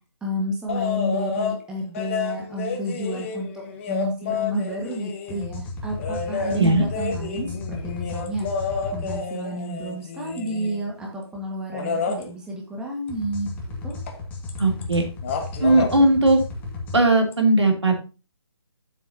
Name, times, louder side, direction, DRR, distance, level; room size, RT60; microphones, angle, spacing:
voice 1, 0.2-8.5 8.9-13.5 13.8-13.9, equal, 5° right, -2 dB, 1.6 m, -30 dB
sound 1, 0.7-1.6 1.9-5.5 6.0-10.9 11.7-12.2 14.1-14.2 14.5-14.9 15.2-15.9 17.3-17.4, left 5 dB, 30° left, 1.4 m, -30 dB
sound 2, 5.3-9.2 13.1-17.0, left 3 dB, 10° left, 1.8 m, -34 dB
voice 2, 14.6-15.1 15.6-16.4 16.9-18.0, right 2 dB, 85° right, 2 dB, 3.0 m, -18 dB
11.5 x 7.4 x 2.8 m, 0.32 s
figure-of-eight pair, 150°, 14 cm